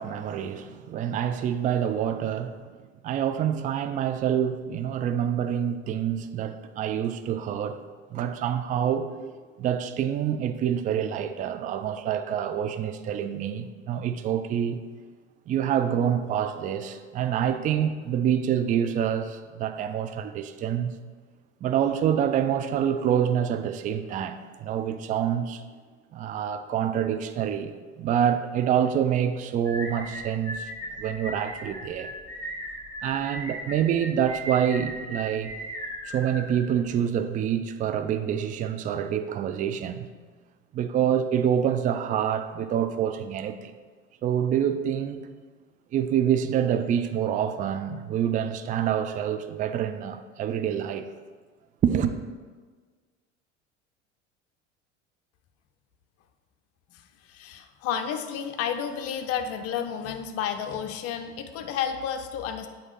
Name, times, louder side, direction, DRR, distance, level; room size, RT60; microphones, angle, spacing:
voice 1, 0.0-2.7 3.0-7.8 8.1-9.1 9.6-14.8 15.5-20.9 21.6-25.6 26.1-30.7 31.0-32.1 33.0-35.5 36.1-40.1 40.7-43.7 44.2-45.2 45.9-51.1 51.8-52.2, right 9 dB, 25° right, 0.4 m, -26 dB
sound 1, 29.6-37.0, equal, 5° left, 1.9 m, -37 dB
voice 2, 57.3-62.7, left 8 dB, 40° left, 0.6 m, -31 dB
7.8 x 2.8 x 5.6 m
figure-of-eight pair, 70°, 36 cm